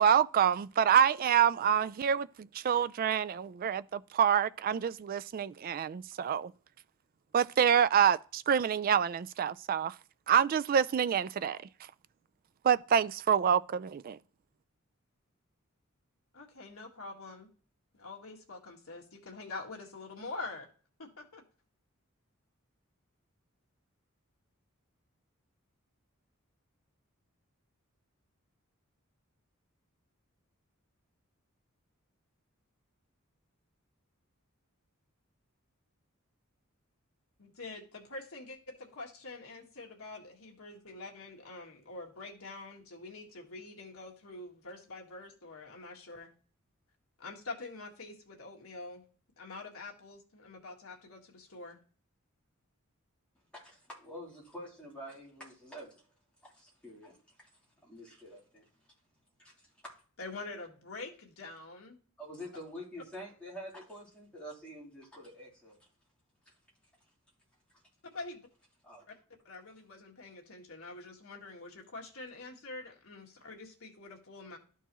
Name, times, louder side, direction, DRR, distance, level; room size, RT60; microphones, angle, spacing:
voice 1, 0.0-6.5 7.3-9.9 10.3-11.6 12.6-14.2, right 8 dB, 45° right, 0.3 m, -27 dB
voice 2, 16.3-17.5 17.9-20.7 21.0-21.4 37.4-46.3 47.2-49.1 49.4-51.8 60.2-62.0 68.1-68.5 69.4-74.6, left 3 dB, 85° left, 1.7 m, -45 dB
voice 3, 53.5-56.0 56.4-57.5 57.8-58.7 59.4-59.9 62.2-65.8 68.8-69.1, equal, 5° left, 3.3 m, -47 dB
12.0 x 4.5 x 3.0 m
head